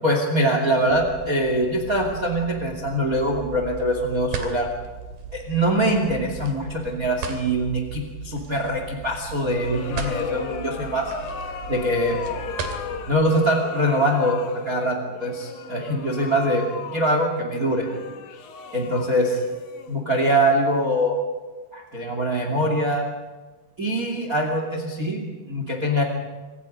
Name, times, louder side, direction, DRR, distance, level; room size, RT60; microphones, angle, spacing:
voice 1, 0.0-4.7 5.3-11.1 11.7-12.2 13.1-16.6 16.9-17.9 18.7-19.4 19.9-21.2 21.7-23.1 23.8-26.0, equal, 25° right, 3 dB, 2.6 m, -23 dB
sound 1, 0.9-13.2, right 5 dB, 85° right, 4.4 m, -37 dB
sound 2, 9.3-20.3, left 6 dB, 60° left, 2.7 m, -36 dB
28.5 x 25.0 x 5.4 m, 1.3 s
omnidirectional pair, 4.3 m